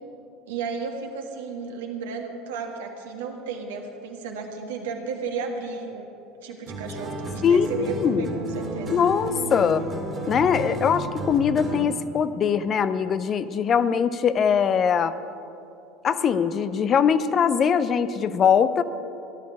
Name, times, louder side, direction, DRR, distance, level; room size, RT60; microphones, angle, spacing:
voice 1, 0.5-6.1 6.4-8.9, right 5 dB, 75° right, 2 dB, 1.7 m, -33 dB
sound 1, 6.7-12.0, right 1 dB, 30° right, 2.2 m, -32 dB
voice 2, 7.4-8.3 8.9-9.8 10.3-15.1 16.0-18.8, left 7 dB, 40° left, 13 dB, 0.6 m, -22 dB
16.5 x 11.5 x 4.8 m, 2.7 s
hypercardioid pair, 70°, 0 cm